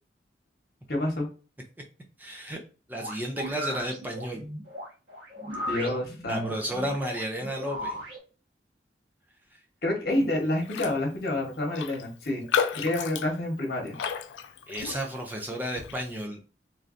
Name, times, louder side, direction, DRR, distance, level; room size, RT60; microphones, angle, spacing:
voice 1, 0.9-1.3 5.5-6.6 9.8-12.4 12.7-14.0, left 1 dB, 60° left, 0 dB, 1.0 m, -28 dB
voice 2, 2.2-2.6 2.9-4.5 5.8-5.9 6.3-8.0 14.7-16.4, equal, 10° right, 0 dB, 0.4 m, -32 dB
sound 1, 2.9-8.2, equal, 85° right, 1.3 m, -37 dB
Raindrop, 10.7-11.0 11.3-11.4 11.7-15.3 15.8-16.0, left 7 dB, 90° left, 0.3 m, -32 dB
3.1 x 2.6 x 2.4 m, 0.34 s
head